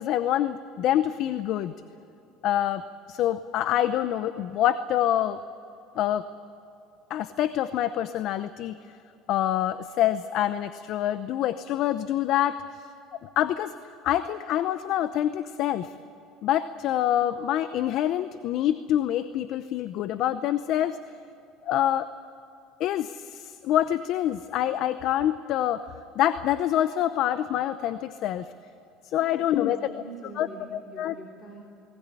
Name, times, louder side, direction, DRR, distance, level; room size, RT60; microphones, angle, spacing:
voice 1, 0.0-1.7 2.4-5.4 6.0-6.2 7.1-8.8 9.3-12.6 13.2-13.8 14.0-15.9 16.4-21.0 21.6-22.1 22.8-25.9 26.2-28.5 29.0-29.9 30.4-31.1, left 11 dB, 60° left, 13 dB, 0.7 m, -26 dB
voice 2, 29.2-31.6, right 1 dB, 30° left, -1 dB, 3.6 m, -44 dB
20.0 x 19.0 x 9.8 m, 2.8 s
supercardioid pair, 120°, 0 cm